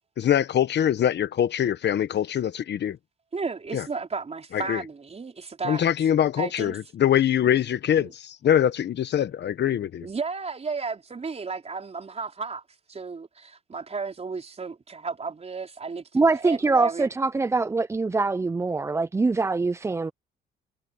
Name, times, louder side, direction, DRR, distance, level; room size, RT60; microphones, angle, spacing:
voice 1, 0.2-3.0 3.7-3.8 4.5-4.8 5.6-10.1, left 10 dB, 60° left, 1.2 m, -23 dB
voice 2, 3.3-5.8 6.4-6.8 8.0-8.1 10.0-12.6 12.9-17.1, right 4 dB, 30° right, 4.7 m, -33 dB
voice 3, 16.1-20.1, right 3 dB, 15° right, 0.4 m, -23 dB
cardioid pair, 90°, 20 cm